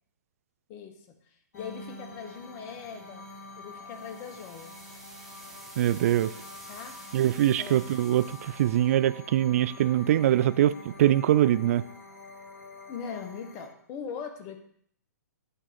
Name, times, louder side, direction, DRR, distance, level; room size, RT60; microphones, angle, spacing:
voice 1, 0.7-3.3 3.6-4.7 6.7-7.0 7.6-7.8 12.9-14.6, left 6 dB, 30° left, 6 dB, 1.3 m, -40 dB
sound 1, 1.5-13.7, left 2 dB, 80° left, 2.6 m, -47 dB
sound 2, 3.9-8.9, right 1 dB, 5° right, 1.6 m, -49 dB
voice 2, 5.8-6.3 7.1-11.8, right 12 dB, 50° right, 16 dB, 0.4 m, -23 dB
9.0 x 3.7 x 6.9 m, 0.66 s
hypercardioid pair, 135°, 10 cm